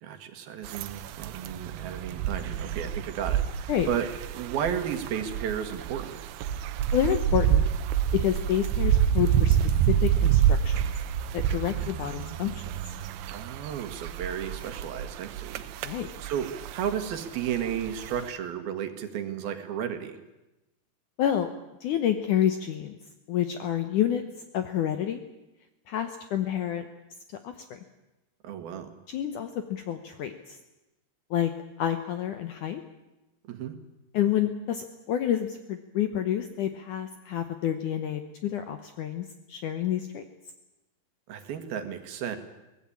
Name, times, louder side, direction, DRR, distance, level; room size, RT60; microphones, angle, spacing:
voice 1, 0.0-6.2 13.3-20.2 28.4-28.9 33.5-33.8 41.3-42.4, right 8 dB, 65° right, 8 dB, 3.3 m, -33 dB
sound 1, 0.6-18.3, right 9 dB, 85° right, 3.1 m, -28 dB
voice 2, 6.9-7.6 8.1-9.6 9.9-10.7 11.3-12.6 15.8-16.1 21.2-21.5 21.8-23.0 23.3-24.2 24.5-25.2 25.9-26.9 27.4-27.8 29.1-30.6 31.3-31.5 31.8-32.8 34.1-40.2, left 10 dB, 70° left, 8 dB, 1.9 m, -28 dB
23.0 x 18.0 x 8.6 m, 0.99 s
omnidirectional pair, 4.7 m